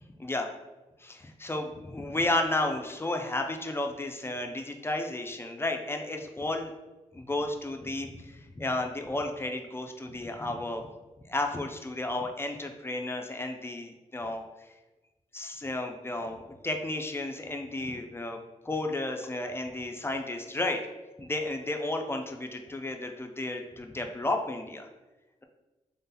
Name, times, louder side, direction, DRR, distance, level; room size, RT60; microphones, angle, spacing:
voice 1, 1.0-6.7 7.1-10.9 11.3-14.4 15.3-18.4 18.6-20.8 21.2-24.9, left 2 dB, 20° left, 4 dB, 0.4 m, -32 dB
3.6 x 2.8 x 3.8 m, 1.1 s
wide cardioid pair, 135°, 13 cm